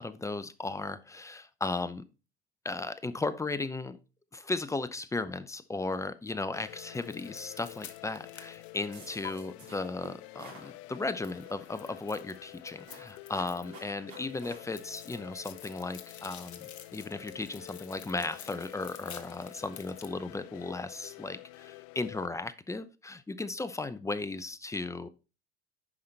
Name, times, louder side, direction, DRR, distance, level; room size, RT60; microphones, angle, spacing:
voice 1, 0.0-2.1 2.6-4.0 4.3-25.1, left 3 dB, 10° left, 14 dB, 0.6 m, -36 dB
sound 1, 6.5-22.3, left 22 dB, 55° left, 0.5 m, -49 dB
sound 2, 6.9-9.3 11.2-13.9 14.1-20.1, left 9 dB, 85° left, 1.0 m, -50 dB
sound 3, 8.9-10.7 11.2-11.7 12.1-14.6, right 3 dB, 75° right, 4.7 m, -51 dB
9.7 x 5.6 x 3.3 m, 0.31 s
hypercardioid pair, 80°, 32 cm